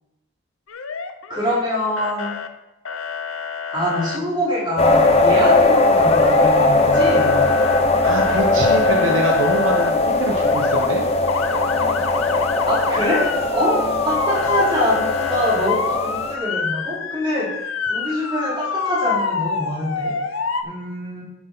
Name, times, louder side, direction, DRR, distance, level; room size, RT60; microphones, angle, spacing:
Motor vehicle (road) / Siren, 0.7-1.7 2.0-2.5 2.9-4.2 6.0-6.7 6.9-9.9 10.4-10.9 11.3-20.6, left 6 dB, 80° left, 0.8 m, -26 dB
voice 1, 1.3-2.4 3.7-7.4 12.7-20.1 20.6-21.2, left 1 dB, 25° right, -6 dB, 3.7 m, -24 dB
sound 1, 4.8-16.4, left 2 dB, 30° left, 0.8 m, -19 dB
voice 2, 8.0-11.1 11.8-11.9, right 1 dB, 70° right, 2 dB, 1.1 m, -25 dB
10.0 x 8.0 x 4.0 m, 0.97 s
head